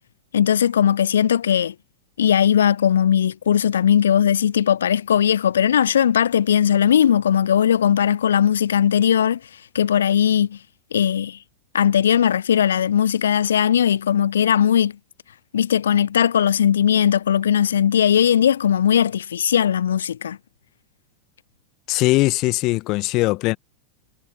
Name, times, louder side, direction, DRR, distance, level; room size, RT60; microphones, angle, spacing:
voice 1, 0.3-1.7 2.2-9.4 9.7-10.6 10.9-11.4 11.7-14.9 15.5-20.4, left 9 dB, 65° left, 1.0 m, -18 dB
voice 2, 21.9-23.6, left 21 dB, 40° left, 1.7 m, -20 dB
figure-of-eight pair, 90°, 0 cm